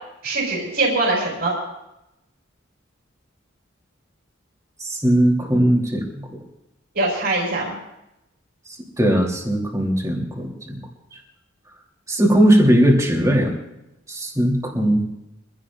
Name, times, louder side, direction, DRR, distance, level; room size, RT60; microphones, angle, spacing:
voice 1, 0.2-1.6 6.9-7.7, right 2 dB, 60° right, -4 dB, 4.9 m, -22 dB
voice 2, 4.8-6.0 6.3-6.4 9.0-10.8 12.1-13.5 14.1-15.0, equal, 15° right, 0 dB, 3.1 m, -18 dB
25.0 x 16.5 x 2.5 m, 0.89 s
head